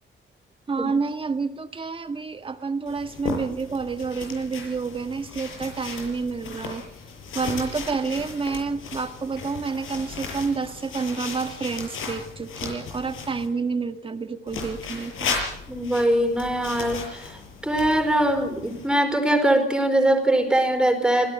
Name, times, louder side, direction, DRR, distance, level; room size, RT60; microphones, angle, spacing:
voice 1, 0.7-6.8 7.3-15.4, right 4 dB, 25° right, 8 dB, 1.6 m, -29 dB
sound 1, 2.9-13.5 14.5-18.9, left 5 dB, 90° left, 7.3 m, -36 dB
voice 2, 15.7-17.4 17.6-21.3, right 1 dB, 5° right, 6 dB, 4.5 m, -22 dB
26.0 x 17.5 x 8.1 m, 0.77 s
cardioid pair, 150°, 20 cm